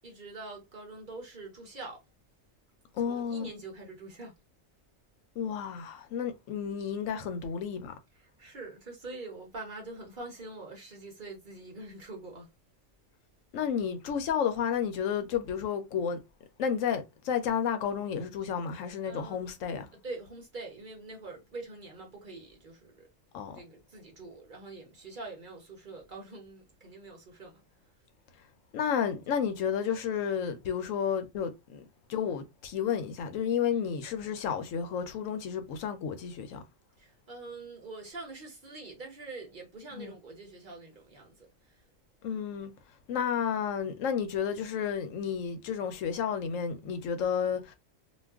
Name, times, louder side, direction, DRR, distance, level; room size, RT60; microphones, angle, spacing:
voice 1, 0.0-2.0 3.0-4.3 8.1-12.5 19.0-19.4 20.0-23.1 23.5-27.6 37.0-41.8, right 3 dB, 45° right, 0.9 m, -44 dB
voice 2, 2.9-3.5 5.4-7.9 13.5-16.2 16.6-19.9 23.3-23.6 28.7-31.8 32.1-36.6 39.9-40.1 42.2-42.7 43.1-47.7, left 7 dB, 80° left, 1.0 m, -31 dB
2.5 x 2.3 x 3.4 m
omnidirectional pair, 1.4 m